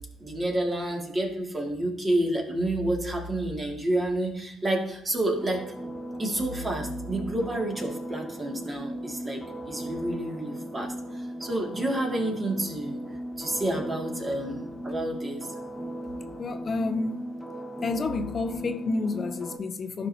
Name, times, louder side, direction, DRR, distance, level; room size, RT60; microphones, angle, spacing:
voice 1, 0.2-5.7 6.2-13.0 13.4-15.5, right 1 dB, 30° right, 2.2 m, -29 dB
sound 1, 5.2-19.6, right 1 dB, 5° right, 1.2 m, -37 dB
voice 2, 16.4-17.3 17.8-20.1, left 3 dB, 40° left, 0.5 m, -29 dB
12.0 x 5.2 x 2.8 m
supercardioid pair, 60°, 0 cm